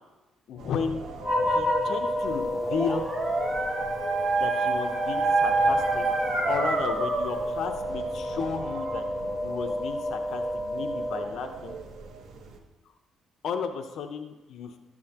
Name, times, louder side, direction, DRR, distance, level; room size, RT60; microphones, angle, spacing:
voice 1, 0.5-1.0 1.4-3.1 4.4-6.1 6.5-9.0 9.4-11.8 13.4-14.7, left 6 dB, 65° left, 6 dB, 0.7 m, -33 dB
sound 1, 0.6-12.6, right 4 dB, 80° right, 1.1 m, -44 dB
sound 2, 1.2-11.7, left 1 dB, 10° left, 3.6 m, -30 dB
Dog, 2.4-7.5, right 3 dB, 45° right, 1.4 m, -27 dB
13.0 x 8.5 x 2.9 m, 1.1 s
cardioid pair, 135°, 0 cm